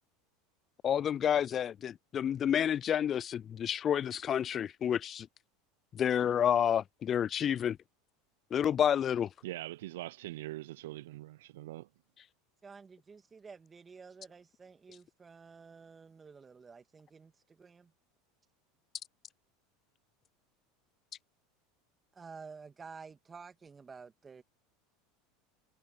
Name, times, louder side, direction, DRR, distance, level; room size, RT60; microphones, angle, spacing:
voice 1, 0.8-5.3 5.9-7.8 8.5-9.3, left 9 dB, 35° left, 0.4 m, -29 dB
voice 2, 9.4-11.9, right 16 dB, 75° right, 0.5 m, -42 dB
voice 3, 12.6-17.9 22.1-24.4, right 5 dB, 25° right, 2.6 m, -51 dB
hypercardioid pair, 90°, 0 cm